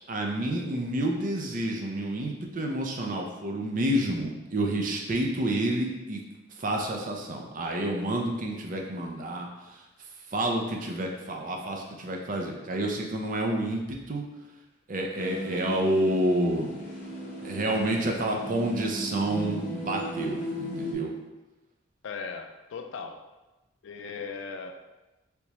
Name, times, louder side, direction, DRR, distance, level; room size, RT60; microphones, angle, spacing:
voice 1, 0.0-6.2 6.6-9.5 10.3-14.2 14.9-16.7 17.4-21.1, right 1 dB, 40° right, 1 dB, 0.5 m, -29 dB
sound 1, 15.2-20.9, equal, 35° left, 0.6 m, -36 dB
voice 2, 22.0-23.2 23.8-24.9, left 5 dB, 75° left, 6 dB, 0.3 m, -38 dB
3.4 x 3.0 x 2.9 m, 1.1 s
head